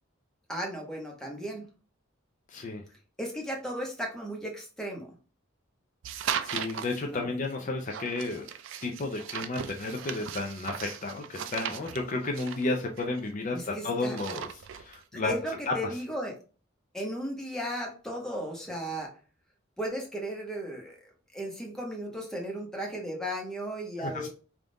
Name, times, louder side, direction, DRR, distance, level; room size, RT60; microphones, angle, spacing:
voice 1, 0.5-1.6 3.2-5.1 7.0-7.3 13.5-14.2 15.1-16.3 16.9-19.1 19.8-21.0 21.3-24.3, equal, 5° left, 0 dB, 0.9 m, -35 dB
voice 2, 2.5-2.8 6.4-8.5 8.8-15.4 15.7-15.9 24.0-24.3, left 2 dB, 40° left, 2 dB, 0.5 m, -32 dB
sound 1, 6.0-7.0 7.9-13.7 14.0-15.0, right 8 dB, 65° right, 0.4 m, -37 dB
3.5 x 2.4 x 3.8 m, 0.36 s
head